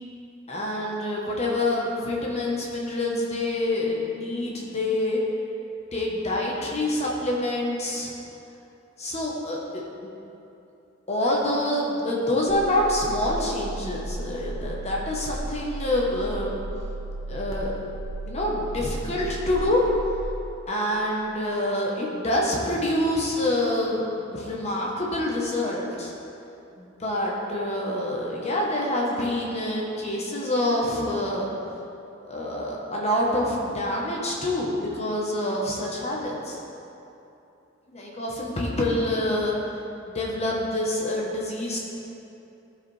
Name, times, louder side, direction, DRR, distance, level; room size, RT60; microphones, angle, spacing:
voice 1, 0.5-5.2 5.9-8.1 9.0-9.8 11.1-16.6 17.3-17.7 18.2-19.8 20.7-26.1 26.8-31.5 32.2-36.6 37.9-39.6 40.1-41.8, left 1 dB, 35° left, -3 dB, 1.0 m, -26 dB
sound 1, 12.5-20.2, right 2 dB, 85° left, 0.8 m, -35 dB
14.5 x 4.8 x 3.3 m, 2.9 s
head